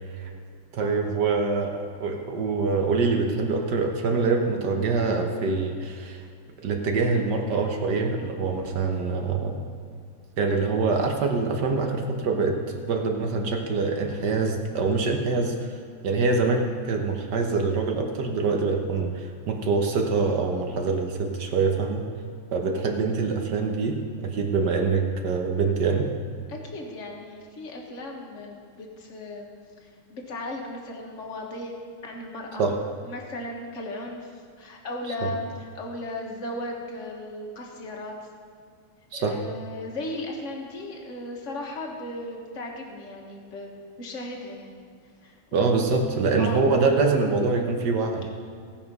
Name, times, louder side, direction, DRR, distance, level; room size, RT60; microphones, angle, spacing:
voice 1, 0.7-6.2 6.6-9.6 10.4-15.5 16.0-22.0 22.5-26.1 32.6-32.8 39.1-39.4 45.5-48.3, right 4 dB, 55° right, 3 dB, 1.5 m, -25 dB
voice 2, 26.5-29.5 29.8-31.7 32.0-32.7 33.0-38.1 39.1-44.8 45.2-45.7 46.4-46.7, left 2 dB, 40° left, 0 dB, 1.6 m, -36 dB
17.5 x 5.9 x 5.4 m, 2.3 s
omnidirectional pair, 2.3 m